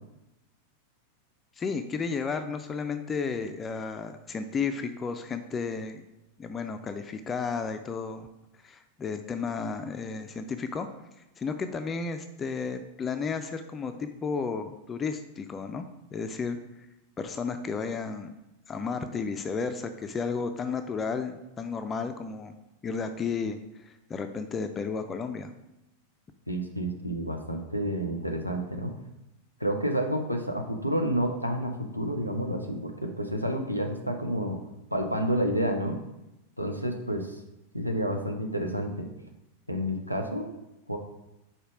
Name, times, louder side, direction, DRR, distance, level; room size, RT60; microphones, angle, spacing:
voice 1, 1.6-6.1 6.4-8.3 8.6-10.9 11.4-15.9 16.1-16.9 17.2-18.3 18.7-22.6 22.8-25.5, left 5 dB, 20° left, 8 dB, 0.4 m, -33 dB
voice 2, 26.5-28.9 29.6-34.6 34.9-36.0 36.6-37.4 37.7-39.1 39.7-40.5 40.9-41.0, equal, 90° right, 3 dB, 0.7 m, -29 dB
5.0 x 4.3 x 4.9 m, 0.93 s
figure-of-eight pair, 90°, 0 cm